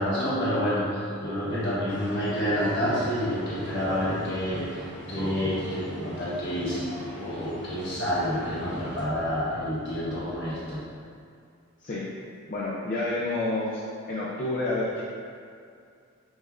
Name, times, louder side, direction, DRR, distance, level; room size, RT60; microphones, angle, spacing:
voice 1, 0.0-4.7 5.1-10.8, equal, 55° left, -9 dB, 1.4 m, -28 dB
sound 1, 1.9-9.0, right 1 dB, 40° right, 0.8 m, -40 dB
voice 2, 12.5-13.8 14.1-15.0, left 2 dB, 40° left, -7 dB, 0.5 m, -29 dB
5.2 x 2.5 x 3.6 m, 2.3 s
head